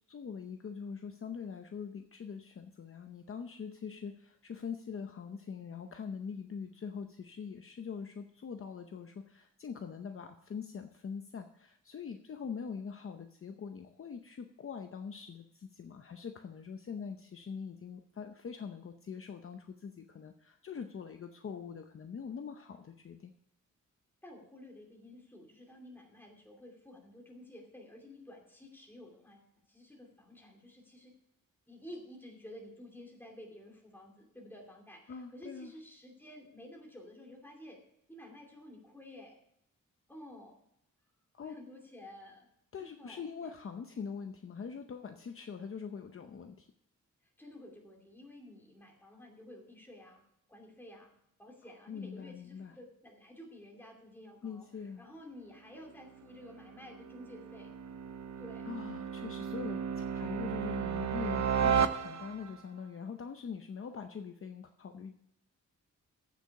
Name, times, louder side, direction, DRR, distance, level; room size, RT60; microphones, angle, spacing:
voice 1, 0.1-23.3 35.1-35.7 41.3-41.6 42.7-46.7 51.9-52.8 54.4-55.0 58.6-65.1, left 6 dB, 45° left, 6 dB, 0.7 m, -43 dB
voice 2, 24.2-31.2 31.7-37.8 38.1-39.4 40.1-40.6 41.4-42.5 42.8-43.5 47.4-50.2 50.5-51.1 51.4-54.7 55.0-57.7 58.4-58.7, left 1 dB, 5° left, 0 dB, 2.8 m, -52 dB
sound 1, 56.2-62.6, right 7 dB, 60° right, 0.7 m, -34 dB
15.0 x 6.7 x 4.7 m, 0.74 s
wide cardioid pair, 175°, 32 cm